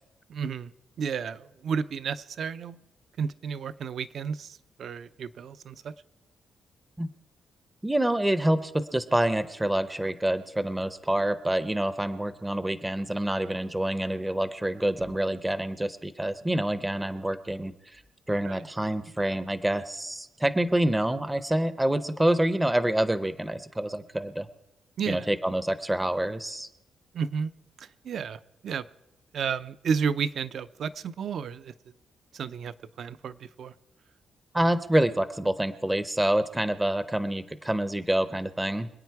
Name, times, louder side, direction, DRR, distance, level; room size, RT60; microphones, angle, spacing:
voice 1, 0.3-0.7 1.0-2.8 3.2-5.9 18.4-18.6 25.0-25.3 27.1-27.5 27.8-28.9 29.3-31.7 32.3-33.7 34.6-34.7, right 6 dB, 55° right, 14 dB, 0.6 m, -32 dB
voice 2, 7.8-18.0 18.3-24.5 25.1-26.7 34.5-38.9, right 1 dB, 10° right, 13 dB, 0.6 m, -27 dB
26.0 x 9.0 x 4.7 m, 0.93 s
cardioid pair, 140°, 0 cm